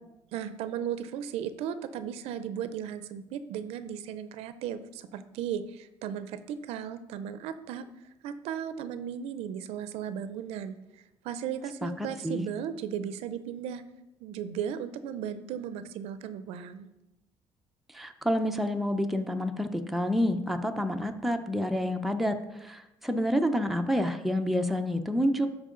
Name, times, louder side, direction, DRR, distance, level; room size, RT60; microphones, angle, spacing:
voice 1, 0.3-7.9 8.2-10.7 11.2-13.8 14.2-16.9, right 9 dB, 85° right, 12 dB, 0.5 m, -36 dB
voice 2, 17.9-25.5, equal, ahead, 5 dB, 0.6 m, -28 dB
12.0 x 4.6 x 3.8 m, 0.95 s
cardioid pair, 115°, 10 cm